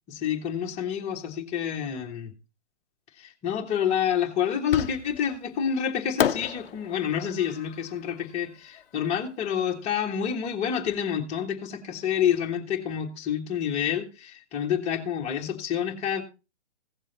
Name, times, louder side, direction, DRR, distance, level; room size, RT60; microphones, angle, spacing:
voice 1, 0.1-2.3 3.2-16.2, left 8 dB, 20° left, 2 dB, 1.5 m, -28 dB
Fireworks, 4.7-5.4 6.2-9.3, left 9 dB, 50° left, 0.7 m, -32 dB
16.0 x 7.3 x 4.0 m, 0.30 s
figure-of-eight pair, 130°, 35 cm